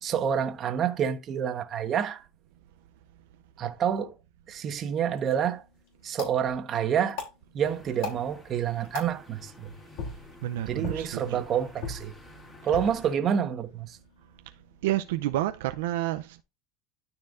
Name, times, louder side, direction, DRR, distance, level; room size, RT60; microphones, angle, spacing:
voice 1, 0.0-2.2 3.6-4.1 4.5-5.6 6.0-7.2 7.5-9.7 10.7-12.1 12.6-14.0, right 8 dB, 40° right, 1.1 m, -28 dB
sound 1, 5.0-15.1, left 5 dB, 65° left, 3.3 m, -43 dB
sound 2, 7.6-13.2, left 1 dB, 15° left, 2.5 m, -51 dB
voice 2, 10.4-11.4 14.8-16.4, right 14 dB, 85° right, 0.5 m, -29 dB
12.5 x 4.5 x 2.5 m
supercardioid pair, 120°, 0 cm